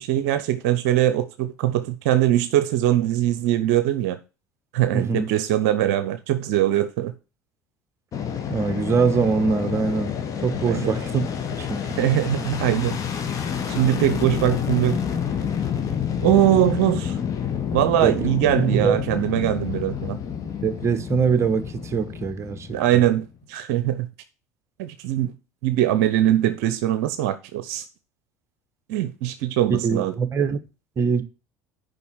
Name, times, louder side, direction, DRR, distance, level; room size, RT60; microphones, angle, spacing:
voice 1, 0.0-4.2 4.7-7.1 10.6-10.9 12.0-13.0 13.7-15.0 16.2-17.2 17.7-20.2 22.7-24.1 24.8-25.3 25.6-27.8 28.9-30.1, right 12 dB, 70° right, 0.7 m, -22 dB
voice 2, 4.9-5.3 8.5-10.2 10.4-11.2 11.6-12.0 18.0-18.3 18.6-19.0 20.6-23.0 29.8-30.6 31.0-31.2, right 5 dB, 35° right, 1.2 m, -23 dB
Fixed-wing aircraft airplane, 8.1-23.3, left 7 dB, 45° left, 2.0 m, -29 dB
6.9 x 5.2 x 6.2 m
hypercardioid pair, 75°, 8 cm